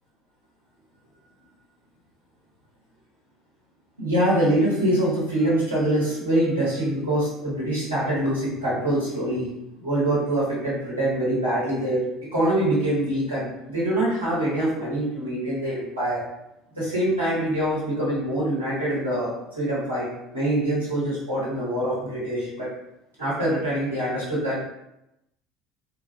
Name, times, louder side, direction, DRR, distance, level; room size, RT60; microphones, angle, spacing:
voice 1, 4.0-9.5 9.8-12.0 12.3-16.2 16.8-20.1 20.3-22.7 23.2-24.6, right 1 dB, 85° right, -9 dB, 1.2 m, -24 dB
3.4 x 2.5 x 3.0 m, 0.87 s
figure-of-eight pair, 65°, 0 cm